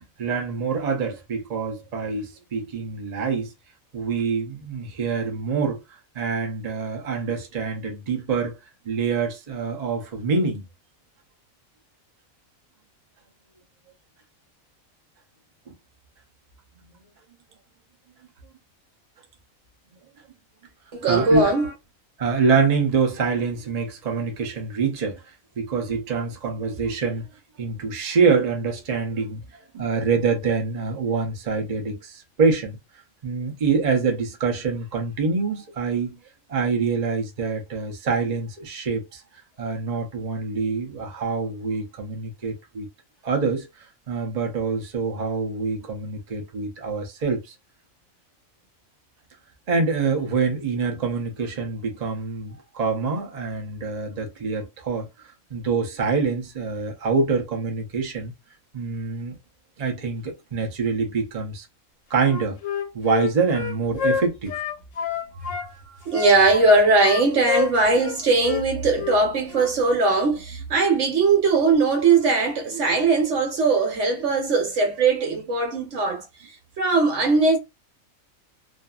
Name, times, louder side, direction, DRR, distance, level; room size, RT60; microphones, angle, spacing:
voice 1, 0.2-3.5 3.9-5.8 6.2-8.6 8.9-10.6 16.8-16.9 21.1-21.5 22.2-25.2 25.6-27.3 27.6-29.4 29.7-32.8 33.2-36.2 36.5-39.2 39.6-42.9 43.2-43.7 44.1-47.5 49.7-55.1 55.5-58.3 58.7-59.4 59.8-61.6 62.1-62.6 62.9-64.5, right 4 dB, 40° right, 0.6 m, -25 dB
voice 2, 20.9-21.7 65.3-77.6, right 3 dB, 60° right, 1.2 m, -20 dB
Wind instrument woodwind instrument, 62.2-65.7 66.1-68.2 68.4-68.6 68.9-69.2 69.5-69.7, left 8 dB, 70° left, 0.9 m, -28 dB
2.6 x 2.5 x 2.3 m
omnidirectional pair, 1.4 m